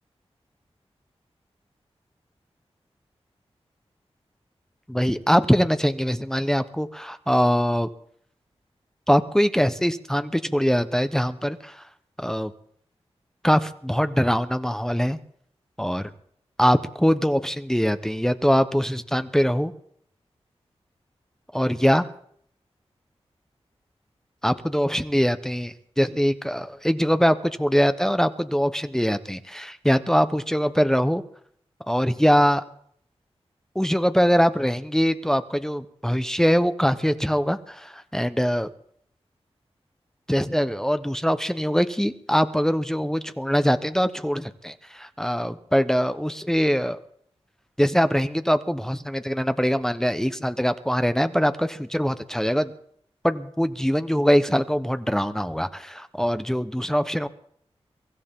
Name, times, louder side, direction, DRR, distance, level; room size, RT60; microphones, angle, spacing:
voice 1, 4.9-7.9 9.1-11.8 12.2-12.5 13.4-15.2 15.8-16.1 16.6-19.7 21.5-22.1 24.4-25.7 26.0-31.2 31.9-32.6 33.7-38.7 40.3-47.0 47.8-52.7 53.2-57.3, equal, 5° left, 10 dB, 1.1 m, -22 dB
23.5 x 14.0 x 3.8 m, 0.64 s
cardioid pair, 60°, 11 cm